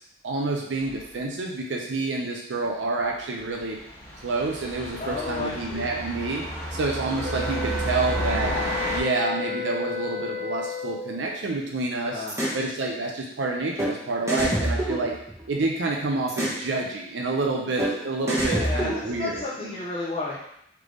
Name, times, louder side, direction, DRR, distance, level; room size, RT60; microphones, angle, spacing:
voice 1, 0.2-3.8 4.2-6.4 6.7-8.5 8.9-12.2 12.5-15.1 15.5-19.4, right 3 dB, 80° right, 0 dB, 0.5 m, -28 dB
sound 1, 0.8-1.0 3.5-9.0, equal, 10° left, 1.4 m, -32 dB
voice 2, 5.0-5.9 12.1-12.5 18.2-20.4, left 3 dB, 30° left, -6 dB, 0.6 m, -32 dB
sound 2, 7.2-11.1, left 2 dB, 50° right, 1.4 m, -32 dB
sound 3, 12.3-12.6 13.8-13.9 14.3-15.7 16.3-16.6 17.8-17.9 18.3-19.4, right 1 dB, 15° right, 0.8 m, -26 dB
3.4 x 3.3 x 3.8 m, 0.76 s
head